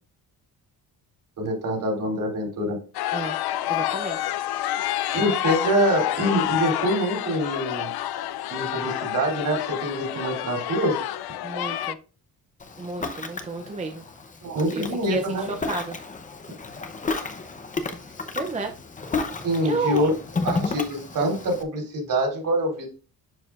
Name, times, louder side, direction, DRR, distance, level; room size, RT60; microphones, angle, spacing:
voice 1, 1.4-2.8 5.1-7.9 8.5-11.0 14.4-15.5 19.4-20.1 20.4-22.9, right 1 dB, 50° right, 1 dB, 3.1 m, -25 dB
sound 1, 2.9-11.9, left 13 dB, 70° left, 0.5 m, -28 dB
voice 2, 3.7-4.3 11.4-12.0 12.8-14.0 14.7-16.0 18.3-18.7 19.6-20.0, right 3 dB, 20° right, 4 dB, 0.5 m, -31 dB
Ocean, 12.6-21.6, left 3 dB, 20° left, 0.7 m, -32 dB
11.0 x 4.7 x 2.5 m, 0.36 s
cardioid pair, 165°, 40 cm